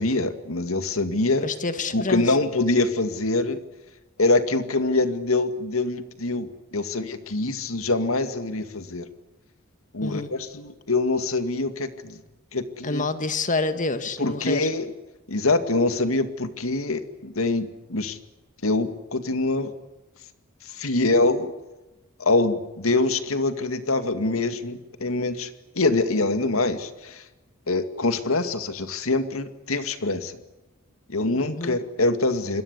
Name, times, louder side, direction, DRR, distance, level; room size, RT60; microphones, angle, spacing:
voice 1, 0.0-1.5 1.9-3.6 4.2-9.1 9.9-12.2 12.5-13.0 14.2-14.9 15.3-18.2 18.6-19.7 20.7-21.5 22.2-25.5 25.8-27.2 27.7-30.4 31.1-32.6, left 2 dB, 80° left, 10 dB, 2.2 m, -24 dB
voice 2, 1.4-2.4 10.0-10.3 12.8-14.7 31.4-31.8, left 3 dB, 40° left, 10 dB, 2.0 m, -28 dB
26.5 x 22.0 x 8.3 m, 1.1 s
head